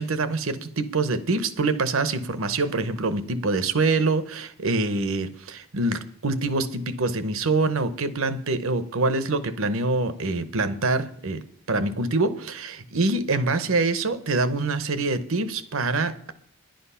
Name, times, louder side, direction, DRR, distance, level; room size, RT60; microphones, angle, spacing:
voice 1, 0.0-11.4 11.7-16.3, right 3 dB, 65° right, 13 dB, 0.9 m, -25 dB
10.5 x 10.5 x 5.7 m, 0.62 s
head